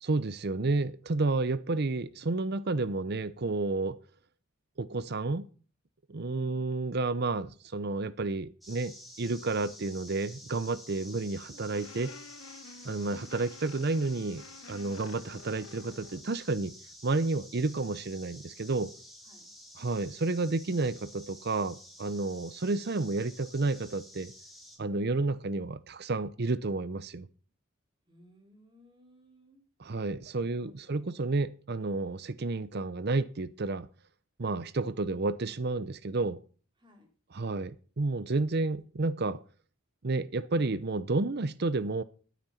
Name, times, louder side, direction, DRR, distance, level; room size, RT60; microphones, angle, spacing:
voice 1, 0.0-4.0 4.8-5.5 6.1-12.1 12.8-16.7 17.0-18.9 19.8-24.3 24.8-27.3 29.8-33.9 34.4-36.4 37.3-39.4 40.0-42.0, right 3 dB, 50° right, 0.7 m, -31 dB
voice 2, 6.4-6.8 19.2-19.5 28.1-29.6 30.4-31.3 36.8-37.1, equal, 25° right, 3.6 m, -60 dB
sound 1, 8.6-24.8, equal, ahead, 3.5 m, -51 dB
sound 2, 11.7-16.3, left 5 dB, 75° left, 0.8 m, -50 dB
12.0 x 9.3 x 5.7 m
head